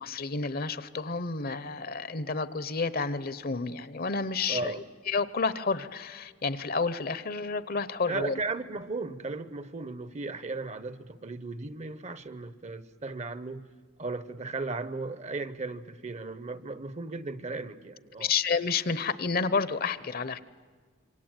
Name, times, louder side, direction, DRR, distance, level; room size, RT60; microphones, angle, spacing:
voice 1, 0.0-4.7 5.1-8.4 18.2-20.4, left 4 dB, 50° left, 0.8 m, -30 dB
voice 2, 4.5-4.8 8.1-13.7 14.0-18.3, right 3 dB, 35° right, 0.8 m, -36 dB
27.0 x 24.5 x 9.0 m
head